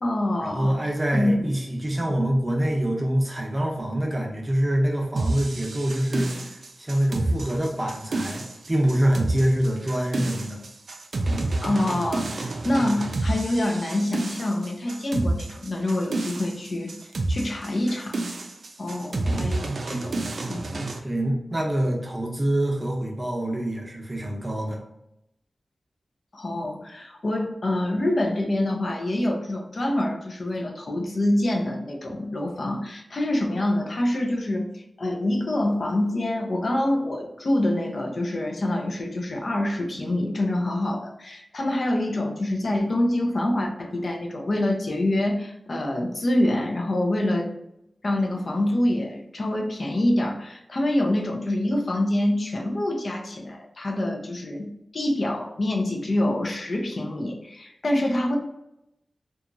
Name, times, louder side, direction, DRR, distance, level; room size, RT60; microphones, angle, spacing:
voice 1, 0.0-0.8 1.1-1.5 2.1-2.2 11.6-16.9 17.3-18.2 18.8-20.2 20.5-20.9 26.3-47.5 48.0-58.4, left 1 dB, 55° left, 1 dB, 0.4 m, -26 dB
voice 2, 0.5-10.6 21.0-24.8, right 1 dB, 25° right, -1 dB, 0.6 m, -25 dB
sound 1, 5.2-21.0, right 2 dB, 75° right, 0.3 m, -29 dB
2.8 x 2.3 x 2.5 m, 0.84 s
wide cardioid pair, 100°, 0 cm